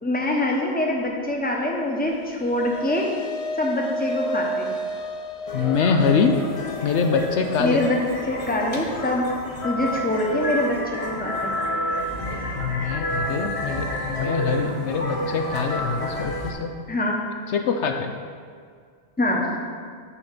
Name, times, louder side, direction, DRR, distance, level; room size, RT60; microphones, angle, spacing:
voice 1, 0.0-3.1 3.6-4.7 7.6-8.0 8.3-9.3 9.6-11.5 16.9-17.2 19.2-19.6, left 1 dB, 10° left, -1 dB, 1.0 m, -24 dB
sound 1, 2.0-10.6, equal, 45° left, 0.5 m, -33 dB
voice 2, 5.5-6.4 6.8-7.8 12.6-16.7 17.5-18.1, left 5 dB, 70° left, 5 dB, 0.9 m, -24 dB
sound 2, 5.5-16.5, equal, 30° left, 0.9 m, -29 dB
7.0 x 5.8 x 6.7 m, 2.1 s
omnidirectional pair, 1.3 m